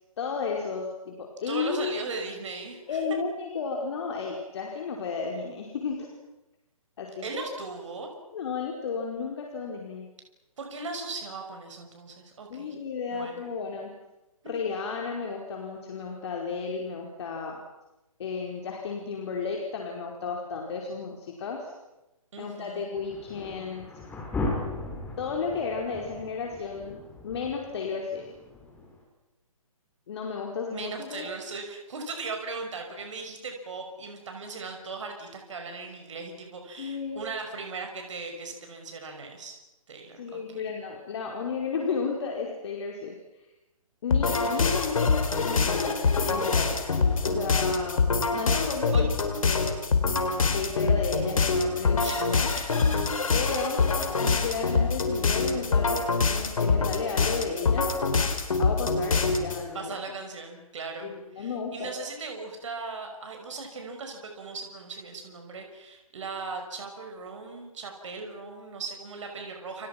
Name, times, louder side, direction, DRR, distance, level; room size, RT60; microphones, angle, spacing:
voice 1, 0.2-1.9 2.9-6.1 7.0-7.4 8.3-10.1 12.5-13.9 14.4-17.6 18.2-21.7 22.4-23.9 25.2-28.2 30.1-31.3 36.8-37.2 40.2-43.2 44.0-46.0 46.2-46.8 47.2-49.1 49.4-49.7 50.0-52.5 53.3-53.8 54.2-57.9 58.6-60.0 61.0-61.9, left 5 dB, 50° left, 0 dB, 5.0 m, -33 dB
voice 2, 1.5-3.0 7.2-8.1 10.6-12.7 13.1-13.4 14.4-14.6 22.3-22.9 30.7-39.6 39.9-40.7 48.9-49.0 52.0-53.1 59.7-69.9, right 4 dB, 55° right, 4 dB, 6.0 m, -38 dB
sound 1, 22.9-29.0, left 2 dB, 10° left, 6.1 m, -37 dB
sound 2, 44.1-59.6, left 4 dB, 65° left, 4.7 m, -25 dB
29.5 x 28.5 x 6.1 m, 0.99 s
figure-of-eight pair, 140°, 19 cm